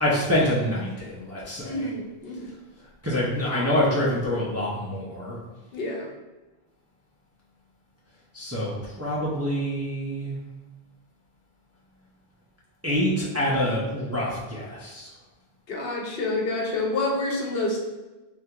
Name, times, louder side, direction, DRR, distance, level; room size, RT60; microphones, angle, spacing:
voice 1, 0.0-1.9 3.0-5.4 8.3-10.4 12.8-15.1, left 1 dB, 20° right, -7 dB, 0.4 m, -26 dB
voice 2, 1.6-2.4 5.7-6.1 15.7-17.8, left 2 dB, 70° left, -1 dB, 0.9 m, -28 dB
3.4 x 2.4 x 2.8 m, 1.1 s
omnidirectional pair, 1.0 m